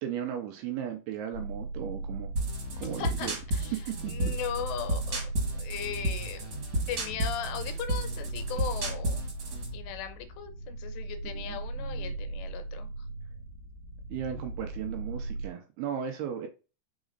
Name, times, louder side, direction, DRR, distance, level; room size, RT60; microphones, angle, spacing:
voice 1, 0.0-2.3 2.8-3.4 3.7-3.8 4.2-4.3 11.2-12.1 14.1-16.5, right 9 dB, 75° right, 5 dB, 2.5 m, -36 dB
sound 1, 1.3-15.5, right 2 dB, 30° left, 2.6 m, -39 dB
sound 2, 2.4-9.7, right 1 dB, 40° right, 2.0 m, -32 dB
voice 2, 2.8-3.8 4.1-6.6 6.9-9.3 9.7-12.9, left 9 dB, 85° left, 9 dB, 3.0 m, -38 dB
6.1 x 4.1 x 4.0 m, 0.31 s
omnidirectional pair, 5.0 m